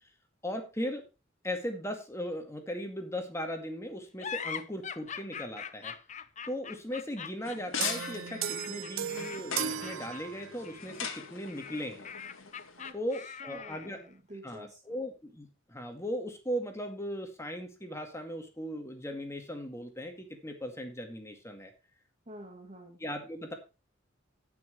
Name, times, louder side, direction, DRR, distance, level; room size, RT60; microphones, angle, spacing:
voice 1, 0.4-1.0 1.4-5.9 6.5-12.1 12.9-14.0 14.4-21.7 23.0-23.5, equal, 15° left, 4 dB, 2.1 m, -38 dB
sound 1, 4.2-14.0, left 7 dB, 35° left, 0.6 m, -43 dB
sound 2, 7.4-12.9, left 6 dB, 80° left, 1.9 m, -41 dB
sound 3, 7.8-10.8, right 9 dB, 90° right, 0.6 m, -36 dB
voice 2, 12.8-15.0 22.3-23.0, right 1 dB, 35° right, -1 dB, 2.2 m, -49 dB
18.0 x 6.1 x 3.1 m, 0.29 s
head